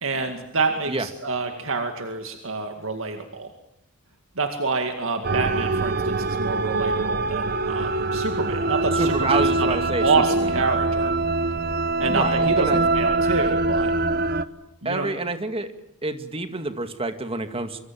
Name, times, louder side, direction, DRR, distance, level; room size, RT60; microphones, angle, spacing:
voice 1, 0.0-3.5 4.4-11.1 12.0-13.9 14.8-15.1, right 4 dB, 65° right, 5 dB, 2.2 m, -27 dB
sound 1, 5.2-14.4, right 2 dB, 45° right, 1.1 m, -23 dB
voice 2, 8.9-10.1 10.4-10.6 12.1-12.8 14.8-15.7 16.0-17.8, right 2 dB, 25° right, 8 dB, 2.1 m, -28 dB
25.0 x 24.5 x 7.6 m, 0.84 s
head